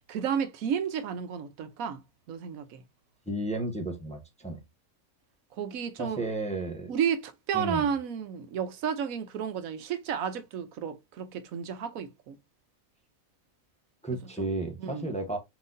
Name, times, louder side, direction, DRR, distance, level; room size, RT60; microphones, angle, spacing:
voice 1, 0.1-2.0 2.3-2.8 5.5-6.2 6.9-12.4 14.1-14.5 14.8-15.1, right 7 dB, 85° right, 1.2 m, -32 dB
voice 2, 3.3-4.6 6.0-6.9 7.5-7.9 14.0-15.4, right 2 dB, 5° left, 0.8 m, -33 dB
5.8 x 3.0 x 2.6 m
omnidirectional pair, 1.4 m